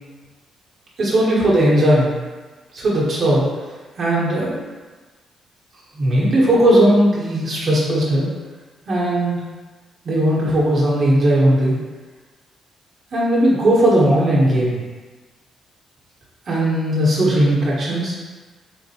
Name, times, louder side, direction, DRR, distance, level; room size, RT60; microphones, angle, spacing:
voice 1, 1.0-2.1 2.7-3.4 4.0-4.6 6.0-8.3 8.9-9.4 10.0-11.8 13.1-14.8 16.5-18.1, right 1 dB, 50° right, -6 dB, 1.1 m, -17 dB
3.8 x 2.2 x 2.8 m, 1.3 s
cardioid pair, 90°, 0 cm